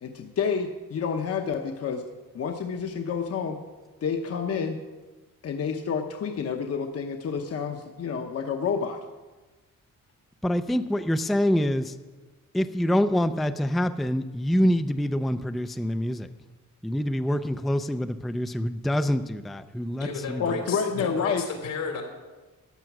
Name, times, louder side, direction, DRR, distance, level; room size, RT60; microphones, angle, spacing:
voice 1, 0.0-2.0 2.3-3.6 4.0-4.8 5.4-9.0 20.4-21.5, left 6 dB, 50° left, 5 dB, 0.9 m, -29 dB
voice 2, 10.4-11.9 12.5-16.3 16.8-20.4, equal, ahead, 10 dB, 0.4 m, -26 dB
voice 3, 20.0-22.0, left 5 dB, 85° left, 3 dB, 3.5 m, -33 dB
14.0 x 9.1 x 6.0 m, 1.2 s
cardioid pair, 130°, 32 cm